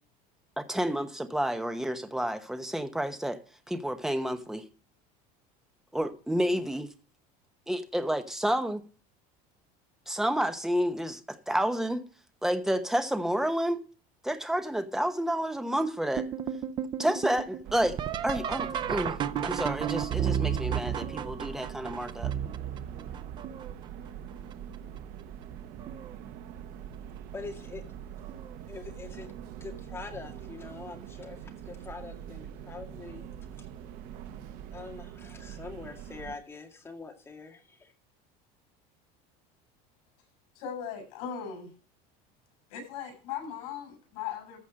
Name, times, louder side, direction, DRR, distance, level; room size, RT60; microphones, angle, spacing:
voice 1, 0.6-3.4 3.7-4.7 5.9-6.9 7.7-8.8 10.1-12.0 12.4-13.8 14.2-16.3 17.0-19.2 19.4-22.3, equal, ahead, 1.0 m, -30 dB
sound 1, 16.2-23.8 24.5-25.0 25.5-26.1 27.4-27.5 28.2-28.5 30.7-30.8 33.1-33.2, right 9 dB, 25° right, 0.5 m, -33 dB
sound 2, 17.6-36.4, right 9 dB, 55° right, 1.1 m, -44 dB
voice 2, 27.3-27.8 28.7-33.3 33.6-33.7 34.7-37.9, left 4 dB, 15° left, 2.1 m, -44 dB
voice 3, 40.5-41.7 42.7-44.6, left 8 dB, 80° left, 7.7 m, -38 dB
14.5 x 5.2 x 6.4 m
cardioid pair, 170°, 18 cm